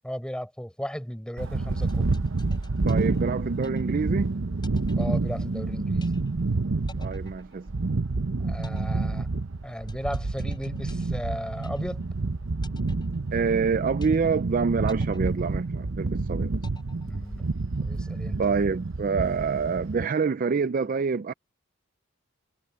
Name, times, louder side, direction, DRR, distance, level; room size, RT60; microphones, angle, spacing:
voice 1, 0.0-2.2 5.0-6.2 8.4-9.3 9.6-12.1 17.0-17.5 17.8-18.4, equal, 5° left, 5.4 m, -35 dB
sound 1, 1.4-20.1, right 3 dB, 65° right, 0.8 m, -28 dB
sound 2, 1.9-4.2 4.6-5.7 6.0-6.5 6.9-8.1 8.6-12.2 12.6-13.7 14.0-14.5 14.9-16.1 16.6-17.6, left 4 dB, 20° left, 7.2 m, -52 dB
voice 2, 2.9-4.3 7.0-7.7 13.3-16.5 18.4-21.3, right 5 dB, 40° right, 0.4 m, -26 dB
head